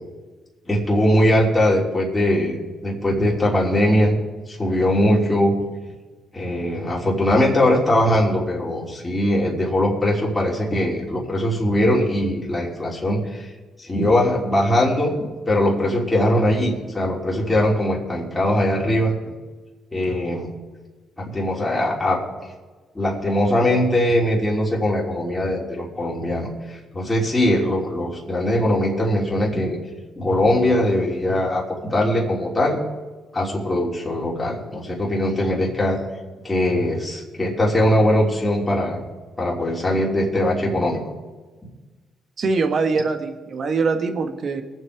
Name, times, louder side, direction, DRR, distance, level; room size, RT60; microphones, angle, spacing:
voice 1, 0.7-4.2 4.5-5.5 6.3-13.5 13.8-15.2 15.5-19.1 19.9-20.5 21.2-22.3 22.9-29.8 30.2-31.6 31.9-32.8 33.3-36.0 36.4-39.0 39.4-41.0, left 1 dB, 15° left, -4 dB, 3.2 m, -21 dB
voice 2, 42.4-44.6, right 4 dB, 50° right, 7 dB, 1.4 m, -23 dB
22.5 x 7.6 x 4.8 m, 1.3 s
cardioid pair, 90°, 0 cm